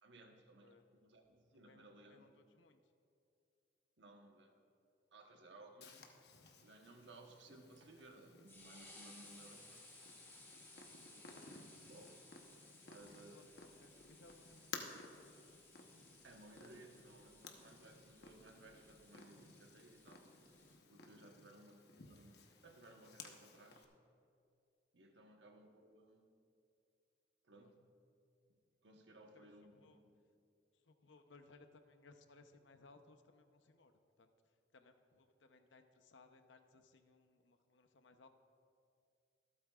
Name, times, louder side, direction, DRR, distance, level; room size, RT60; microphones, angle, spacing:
voice 1, 0.0-2.2 4.0-4.6 5.1-6.0 6.6-9.9 10.7-12.2 12.8-13.5 16.2-20.3 20.9-23.9 24.9-26.3 27.4-27.8 28.5-30.2, right 2 dB, 75° right, 3 dB, 1.2 m, -61 dB
voice 2, 1.5-2.8 10.9-11.6 13.3-15.5 21.2-21.4 25.1-25.4 27.6-27.7 29.3-29.5 29.7-30.0 30.9-33.9 34.2-34.3 34.7-38.3, left 3 dB, 85° left, 7 dB, 0.8 m, -65 dB
Purr, 5.8-23.8, left 4 dB, 60° left, 1.0 m, -57 dB
sound 1, 7.7-20.8, left 2 dB, 10° left, 1.3 m, -61 dB
24.5 x 8.5 x 2.4 m, 2.4 s
head